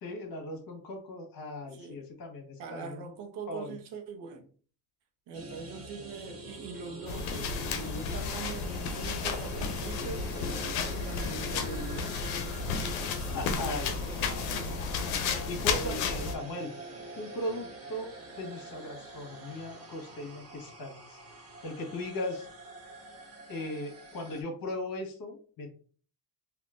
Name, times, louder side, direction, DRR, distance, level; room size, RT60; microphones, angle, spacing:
voice 1, 0.0-3.0 3.5-3.7 13.3-14.5 15.5-16.7 17.2-18.1 18.4-21.2 21.6-22.5 23.5-25.7, left 1 dB, 50° left, 1.4 m, -38 dB
voice 2, 1.6-2.0 2.6-4.5 5.3-12.3 13.4-14.2 14.5-14.8 15.7-16.3, right 4 dB, 65° right, 0.9 m, -42 dB
sound 1, 5.3-24.4, right 1 dB, 35° right, 1.2 m, -45 dB
sound 2, 7.1-16.3, left 5 dB, 85° left, 0.7 m, -33 dB
3.6 x 2.5 x 2.5 m
supercardioid pair, 85°, 44 cm